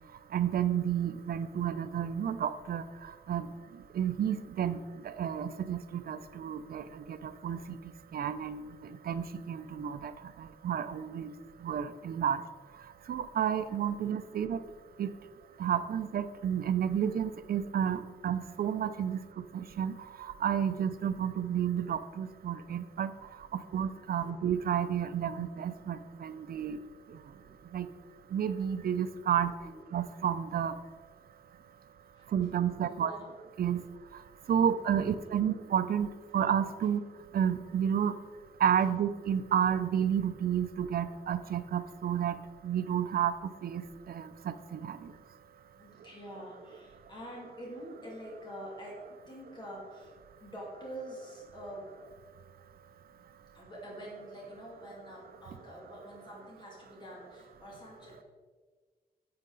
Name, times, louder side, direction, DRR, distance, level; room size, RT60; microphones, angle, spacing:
voice 1, 0.3-2.8 3.3-3.5 3.9-4.8 5.0-7.6 8.1-8.6 9.1-10.1 10.4-11.3 11.6-12.4 13.1-14.6 15.0-15.1 15.6-19.2 19.5-19.9 20.4-23.1 23.7-26.8 27.7-27.9 28.3-29.5 29.9-30.7 32.3-33.1 33.6-33.8 34.5-36.1 36.3-37.0 37.3-38.1 38.6-42.4 42.6-43.3 43.6-45.0, right 9 dB, 70° right, 11 dB, 0.5 m, -31 dB
voice 2, 23.6-24.3 29.7-29.8 32.1-32.3 32.9-33.3 34.6-34.7 35.0-35.4 36.8-36.9 45.8-50.1 50.4-52.0 53.5-58.2, equal, 30° left, -4 dB, 2.4 m, -47 dB
10.5 x 7.5 x 3.9 m, 1.5 s
wide cardioid pair, 175°, 16 cm